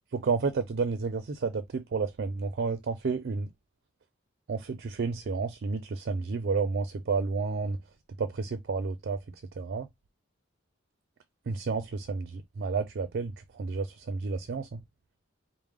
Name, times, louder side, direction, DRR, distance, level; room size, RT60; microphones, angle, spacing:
voice 1, 0.1-3.5 4.5-7.8 8.2-9.2 9.6-9.9 11.5-14.8, right 4 dB, 55° right, 0.4 m, -31 dB
4.8 x 2.0 x 3.5 m
head